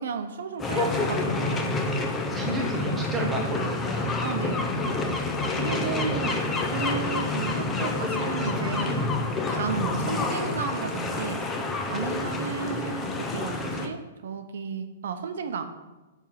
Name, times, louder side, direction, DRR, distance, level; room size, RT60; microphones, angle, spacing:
voice 1, 0.0-1.7 4.2-4.7 5.5-9.1 9.5-11.4 11.9-15.7, right 6 dB, 70° right, 7 dB, 0.9 m, -33 dB
sound 1, 0.6-13.9, left 3 dB, 10° left, 0.6 m, -28 dB
voice 2, 2.3-4.2 5.7-6.4, right 2 dB, 10° right, -1 dB, 1.2 m, -33 dB
9.2 x 3.7 x 5.8 m, 1.1 s
hypercardioid pair, 170°, 0 cm